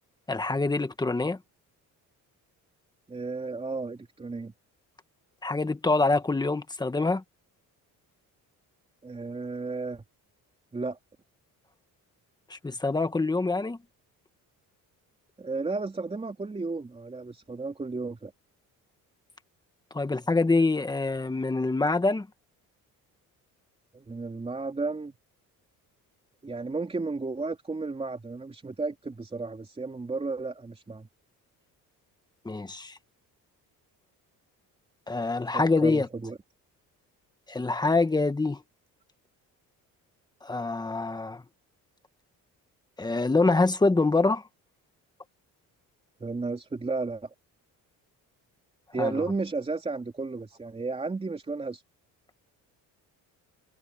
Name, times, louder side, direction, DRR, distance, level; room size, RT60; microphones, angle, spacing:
voice 1, 0.3-1.4 5.4-7.2 12.5-13.8 19.9-22.3 32.4-32.9 35.1-36.1 37.5-38.6 40.4-41.4 43.0-44.4 49.0-49.1, left 3 dB, 10° left, 1.5 m, -25 dB
voice 2, 3.1-4.5 9.0-10.0 10.7-11.0 15.4-18.3 23.9-25.2 26.4-31.1 35.5-36.4 46.2-47.3 48.9-51.8, right 3 dB, 15° right, 3.3 m, -33 dB
cardioid pair, 140°, 34 cm